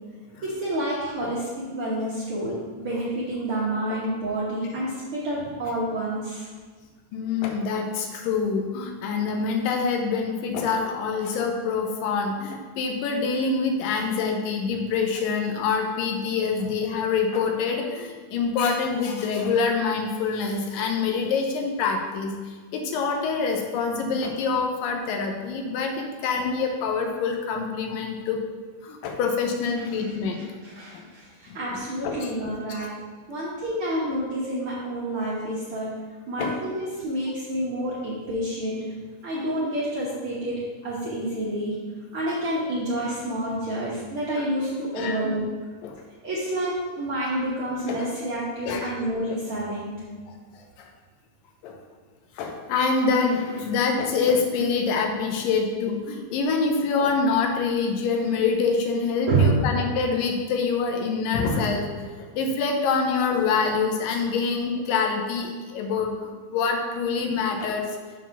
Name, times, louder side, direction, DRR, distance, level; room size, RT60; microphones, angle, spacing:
voice 1, 0.4-6.5 29.8-29.9 30.3-32.9 33.3-35.9 36.3-38.8 39.2-41.8 42.1-45.5 46.2-50.0 59.3-59.7, right 1 dB, 60° right, -7 dB, 1.5 m, -28 dB
voice 2, 7.1-28.4 28.8-30.5 30.9-31.1 31.5-31.8 32.0-32.9 36.4-36.6 44.4-44.5 44.9-45.2 45.8-46.0 47.9-48.1 48.7-48.9 50.3-50.9 51.6-51.8 52.4-67.9, left 5 dB, 85° left, 3 dB, 2.5 m, -26 dB
7.0 x 4.0 x 5.9 m, 1.5 s
omnidirectional pair, 3.8 m